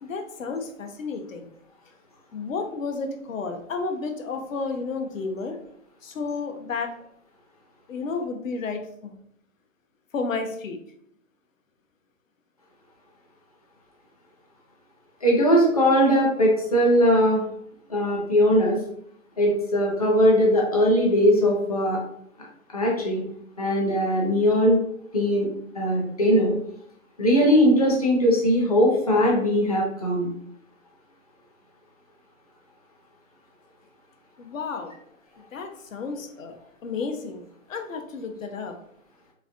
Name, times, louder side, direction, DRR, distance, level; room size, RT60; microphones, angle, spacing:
voice 1, 0.0-1.5 2.3-5.6 6.0-6.9 7.9-9.1 10.1-10.8 34.4-34.9 35.5-36.5 36.8-37.4 37.7-38.7, left 4 dB, 70° left, 5 dB, 0.7 m, -31 dB
voice 2, 15.2-17.4 17.9-18.8 19.4-22.0 22.7-23.2 23.6-24.8 25.1-25.5 25.7-26.5 27.2-30.3, equal, 30° left, -3 dB, 0.5 m, -20 dB
4.0 x 2.1 x 2.5 m, 0.69 s
hypercardioid pair, 165°, 42 cm